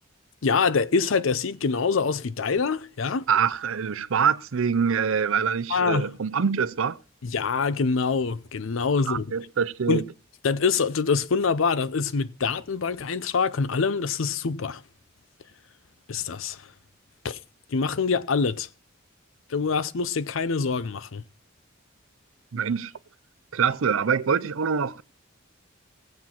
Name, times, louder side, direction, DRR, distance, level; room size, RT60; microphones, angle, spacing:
voice 1, 0.4-3.3 5.7-6.1 7.2-9.3 9.9-10.0 10.4-14.8 16.1-16.6 17.2-17.4 17.7-18.7 19.5-21.2, left 5 dB, 75° left, 0.6 m, -25 dB
voice 2, 3.3-7.0 9.1-10.0 22.5-22.9 23.5-25.0, right 6 dB, 80° right, 0.5 m, -25 dB
17.5 x 7.6 x 4.3 m
head